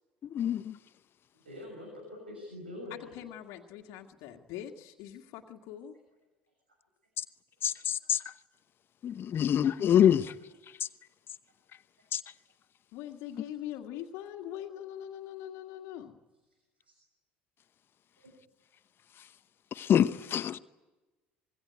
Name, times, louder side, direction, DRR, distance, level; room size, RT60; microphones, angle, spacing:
voice 1, 0.3-0.8 7.6-8.2 9.0-10.3 12.1-12.2 19.8-20.6, left 10 dB, 45° left, 0.9 m, -25 dB
voice 2, 1.4-3.1 16.9-17.0, left 1 dB, 90° right, 6.0 m, -44 dB
voice 3, 2.9-6.0 12.9-16.2, left 11 dB, 60° left, 1.9 m, -42 dB
25.5 x 22.0 x 9.5 m
figure-of-eight pair, 65°, 5 cm